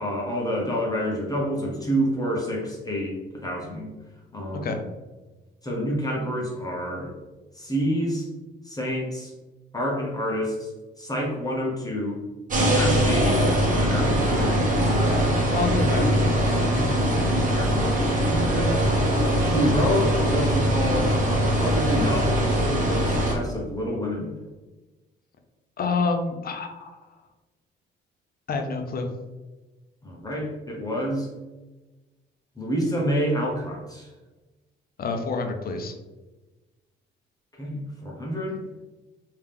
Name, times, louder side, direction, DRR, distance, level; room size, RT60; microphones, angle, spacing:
voice 1, 0.0-3.9 4.3-4.8 5.6-7.1 7.5-8.3 8.6-9.3 9.7-10.7 11.0-12.2 12.6-14.8 17.3-18.8 19.4-21.1 21.4-24.4 30.0-31.3 32.6-34.1 37.6-38.6, equal, 20° left, -2 dB, 0.9 m, -28 dB
sound 1, 12.5-23.4, equal, 40° right, 1.1 m, -22 dB
voice 2, 15.5-16.9 25.8-27.0 28.5-29.1 35.0-35.9, left 4 dB, 50° left, 5 dB, 0.6 m, -28 dB
3.4 x 2.8 x 3.3 m, 1.1 s
cardioid pair, 90°, 20 cm